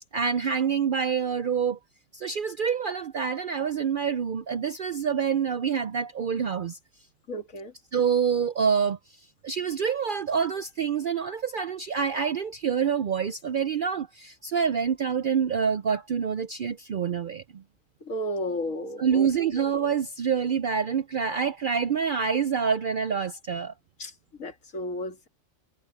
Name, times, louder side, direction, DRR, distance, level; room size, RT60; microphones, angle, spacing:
voice 1, 0.0-1.8 2.1-6.8 7.9-9.0 9.4-17.6 19.0-23.7, right 7 dB, 60° right, 0.5 m, -26 dB
voice 2, 7.3-7.7 18.1-19.3 19.6-19.7 24.0-24.1 24.4-25.3, equal, 75° left, 2.8 m, -33 dB
omnidirectional pair, 1.4 m